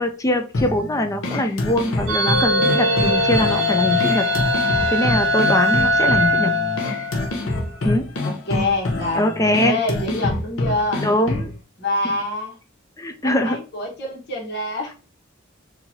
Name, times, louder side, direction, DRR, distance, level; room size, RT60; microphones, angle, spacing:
voice 1, 0.0-4.3 4.9-6.5 7.8-8.1 9.1-9.8 11.0-11.5 13.0-13.6, left 1 dB, 15° left, 6 dB, 0.4 m, -22 dB
sound 1, 0.5-11.6, left 2 dB, 75° left, 0.8 m, -26 dB
sound 2, 2.1-7.5, left 1 dB, 65° right, 0.8 m, -20 dB
voice 2, 8.2-9.2 9.6-11.0 11.8-12.6 13.2-14.9, left 2 dB, 55° left, -2 dB, 1.4 m, -26 dB
4.3 x 2.8 x 2.7 m, 0.33 s
head